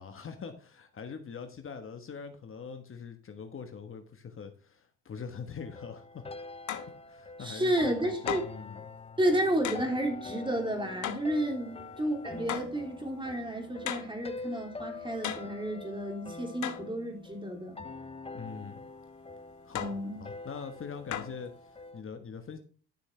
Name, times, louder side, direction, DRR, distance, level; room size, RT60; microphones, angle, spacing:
voice 1, 0.0-6.2 7.1-8.8 18.3-18.8 19.6-21.5 21.9-22.6, left 6 dB, 45° left, 7 dB, 1.3 m, -43 dB
sound 1, 5.6-22.0, left 3 dB, 20° left, 0.8 m, -45 dB
sound 2, 6.7-7.0 8.3-8.6 9.6-9.9 11.0-11.4 12.5-12.8 13.9-14.2 15.2-15.6 16.6-16.9 19.7-20.0 21.1-21.4, left 10 dB, 75° left, 1.2 m, -36 dB
voice 2, 7.4-8.4 9.2-17.8 19.7-20.2, right 1 dB, 15° right, 2 dB, 3.2 m, -31 dB
11.5 x 6.4 x 3.3 m, 0.42 s
cardioid pair, 90°, 30 cm